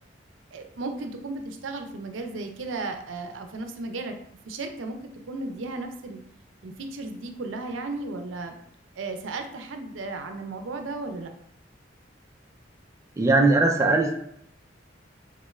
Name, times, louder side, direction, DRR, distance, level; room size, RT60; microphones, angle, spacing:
voice 1, 0.5-4.2 4.5-5.0 5.3-6.2 6.6-8.5 9.0-11.3, right 3 dB, 90° right, 5 dB, 0.5 m, -34 dB
voice 2, 13.2-14.2, right 2 dB, 15° right, 2 dB, 0.3 m, -20 dB
3.6 x 2.3 x 3.1 m, 0.71 s
head